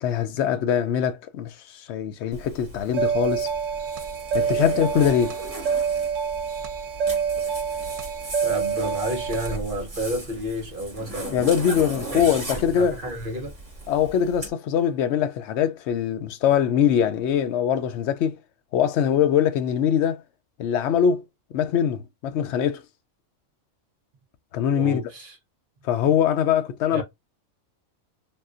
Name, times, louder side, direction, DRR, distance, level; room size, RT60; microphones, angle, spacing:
voice 1, 0.0-3.5 4.3-5.4 11.3-12.9 13.9-18.4 18.7-20.2 20.6-21.2 21.5-22.8 24.5-25.0 25.9-27.0, left 8 dB, 70° left, 0.8 m, -22 dB
Zipper (clothing), 2.3-14.5, right 2 dB, 30° right, 1.3 m, -38 dB
sound 1, 2.9-9.6, right 6 dB, 90° right, 1.0 m, -27 dB
voice 2, 8.4-11.4 11.9-12.3 12.8-13.5 24.7-25.4 26.9-27.0, equal, 45° right, 1.1 m, -31 dB
3.5 x 2.4 x 2.5 m
omnidirectional pair, 1.3 m